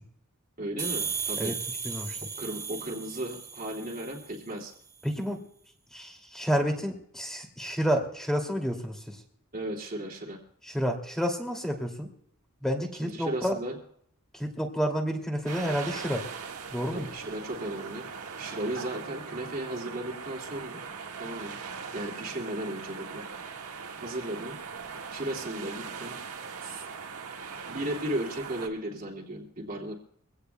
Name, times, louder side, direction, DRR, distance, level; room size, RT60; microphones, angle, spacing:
voice 1, 0.6-1.6 2.4-4.7 9.5-10.4 13.0-13.8 16.9-18.1 18.4-20.8 21.2-21.6 21.9-23.2 24.0-24.6 25.1-26.2 26.6-26.9 27.7-29.9, right 1 dB, 40° right, -3 dB, 2.6 m, -35 dB
sound 1, 0.8-4.4, right 5 dB, 15° right, 2.4 m, -35 dB
voice 2, 1.8-2.2 5.0-5.4 5.9-9.2 10.7-12.1 12.6-13.6 14.3-16.2 16.7-17.1, equal, ahead, 1 dB, 2.6 m, -30 dB
sound 2, 15.5-28.7, right 5 dB, 70° right, 1.7 m, -40 dB
24.5 x 17.0 x 2.3 m, 0.67 s
head